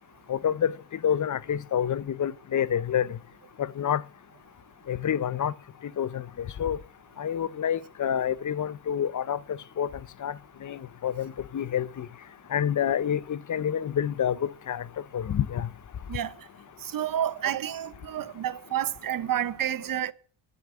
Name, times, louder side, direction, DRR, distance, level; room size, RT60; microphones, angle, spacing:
voice 1, 0.3-0.7 1.0-3.2 3.6-4.0 4.9-5.5 6.0-6.8 7.2-9.9 10.2-10.3 10.6-12.1 12.5-14.8 15.1-15.7, left 9 dB, 40° left, 0.7 m, -28 dB
voice 2, 16.1-16.4 16.8-20.1, right 10 dB, 45° right, 1.0 m, -30 dB
11.0 x 7.9 x 8.7 m
cardioid pair, 80°, 45 cm